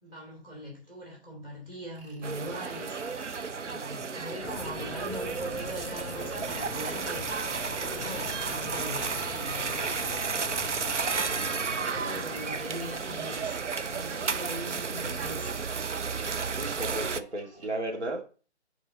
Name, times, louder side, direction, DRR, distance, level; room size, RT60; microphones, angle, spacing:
voice 1, 0.0-3.0 3.6-10.1 11.5-15.5, equal, 10° right, 2.7 m, -41 dB
sound 1, 1.9-2.2 2.8-17.7, right 1 dB, 40° right, 4.8 m, -51 dB
sound 2, 2.2-17.2, right 5 dB, 90° right, 0.7 m, -33 dB
sound 3, 4.4-13.6, left 5 dB, 20° left, 1.8 m, -44 dB
voice 2, 16.5-18.2, right 1 dB, 70° right, 2.0 m, -35 dB
9.7 x 4.7 x 4.0 m
figure-of-eight pair, 150°, 35 cm